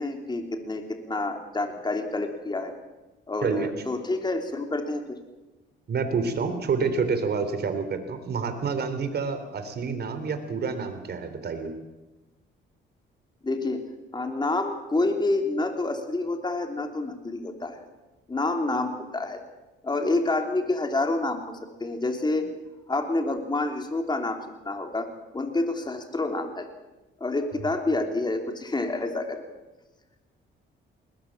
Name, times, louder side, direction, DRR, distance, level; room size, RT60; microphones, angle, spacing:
voice 1, 0.0-2.7 3.3-5.2 13.4-13.8 14.1-17.8 18.3-19.4 19.8-22.5 22.9-25.1 25.3-26.7 27.2-29.4, left 2 dB, 20° left, 4 dB, 3.4 m, -28 dB
voice 2, 5.9-11.7 27.6-27.7, right 5 dB, 55° right, 9 dB, 3.5 m, -28 dB
20.5 x 19.5 x 7.5 m, 1.1 s
cardioid pair, 90°, 20 cm